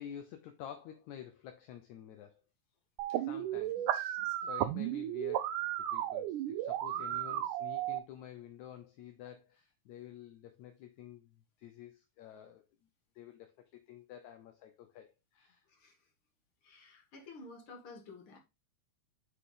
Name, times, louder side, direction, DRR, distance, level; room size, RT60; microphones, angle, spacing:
voice 1, 0.0-2.4 3.2-3.9 4.5-12.7 13.2-15.7, left 10 dB, 75° left, 1.8 m, -50 dB
sound 1, 3.0-8.0, right 13 dB, 75° right, 2.0 m, -34 dB
voice 2, 3.8-4.5 6.9-7.5 15.7-16.1 16.6-18.4, left 3 dB, 45° left, 2.2 m, -54 dB
6.0 x 5.8 x 3.8 m
omnidirectional pair, 4.0 m